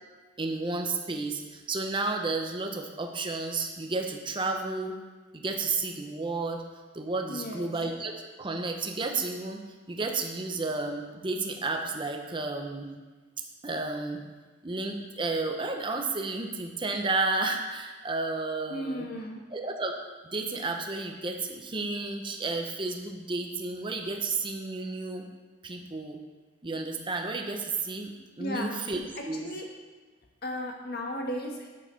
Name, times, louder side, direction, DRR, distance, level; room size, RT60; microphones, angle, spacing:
voice 1, 0.4-5.0 5.3-6.6 6.9-8.1 8.4-9.6 9.9-12.9 13.6-14.2 14.6-19.1 19.5-20.0 20.3-25.3 25.6-26.2 26.6-29.5, right 3 dB, 25° right, 3 dB, 0.8 m, -32 dB
voice 2, 7.3-7.7 18.7-19.4 28.4-28.7 29.3-29.7 30.4-31.7, equal, 55° left, 1 dB, 1.4 m, -35 dB
7.5 x 6.5 x 5.2 m, 1.3 s
head